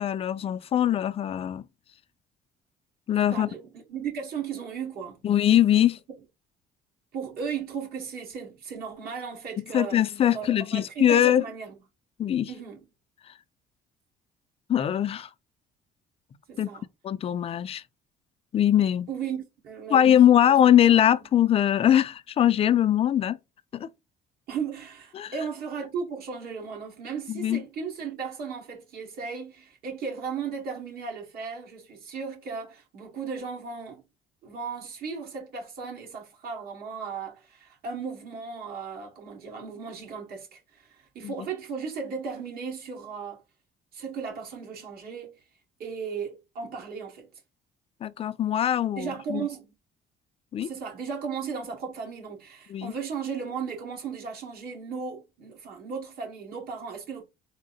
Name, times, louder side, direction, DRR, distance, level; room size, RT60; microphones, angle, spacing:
voice 1, 0.0-1.6 3.1-3.5 5.2-6.0 9.7-11.4 12.2-12.5 14.7-15.3 16.6-16.7 17.0-17.8 18.5-19.1 19.9-23.4 23.7-23.9 25.1-25.3 27.3-27.6 41.2-41.3 48.0-49.5 50.5-50.7 52.7-52.9, left 10 dB, 35° left, 0.4 m, -22 dB
voice 2, 3.3-5.2 7.1-10.0 10.3-11.7 12.5-12.9 16.5-16.9 19.1-20.6 24.5-34.0 34.4-43.4 43.9-45.4 45.8-47.3 49.0-49.7 50.6-57.2, right 6 dB, 65° right, 1.7 m, -36 dB
3.6 x 2.0 x 3.9 m
cardioid pair, 110°, 17 cm